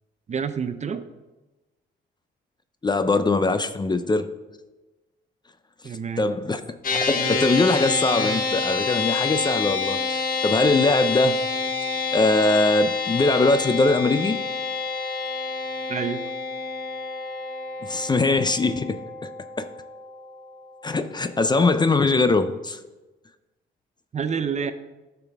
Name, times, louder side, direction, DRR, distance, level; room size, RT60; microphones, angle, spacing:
voice 1, 0.3-1.0 5.8-6.3 15.9-16.2 24.1-24.7, right 6 dB, 35° right, 11 dB, 0.6 m, -28 dB
voice 2, 2.8-4.3 6.2-6.6 6.9-11.4 12.1-14.4 17.8-19.3 19.6-19.7 20.8-22.8, left 3 dB, 20° left, 11 dB, 0.5 m, -22 dB
sound 1, 6.8-20.4, left 4 dB, 45° left, 1.2 m, -28 dB
12.0 x 5.9 x 3.5 m, 1.1 s
cardioid pair, 90°, 20 cm